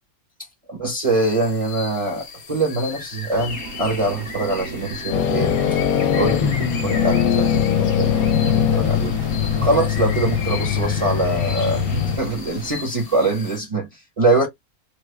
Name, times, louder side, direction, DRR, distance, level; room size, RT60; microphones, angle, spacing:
voice 1, 0.7-5.5 6.2-9.1 9.6-14.5, right 2 dB, 25° right, 0.9 m, -23 dB
sound 1, 1.0-13.6, left 5 dB, 50° left, 1.1 m, -36 dB
sound 2, 3.3-12.7, right 2 dB, 60° right, 1.4 m, -36 dB
sound 3, 5.1-12.2, left 9 dB, 75° left, 1.1 m, -21 dB
3.2 x 2.2 x 3.2 m
omnidirectional pair, 1.5 m